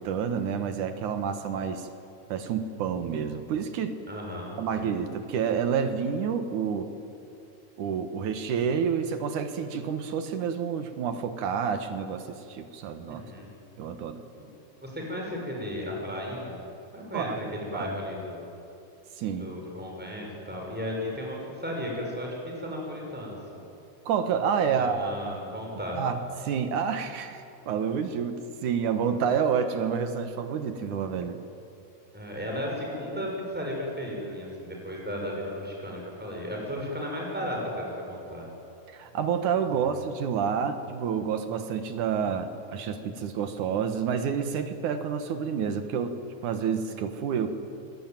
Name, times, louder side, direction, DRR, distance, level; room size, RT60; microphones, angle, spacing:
voice 1, 0.0-1.9 2.3-4.0 4.6-6.9 7.8-13.2 13.8-14.2 17.1-17.9 19.2-19.5 24.1-25.4 25.9-31.4 38.9-47.5, right 7 dB, 85° right, 8 dB, 2.9 m, -29 dB
voice 2, 4.1-4.9 13.1-13.5 14.8-16.6 16.9-18.4 19.4-23.6 24.8-26.0 32.1-38.5 39.7-40.0, left 1 dB, 5° right, -1 dB, 5.8 m, -35 dB
25.5 x 21.0 x 9.2 m, 2.8 s
omnidirectional pair, 3.4 m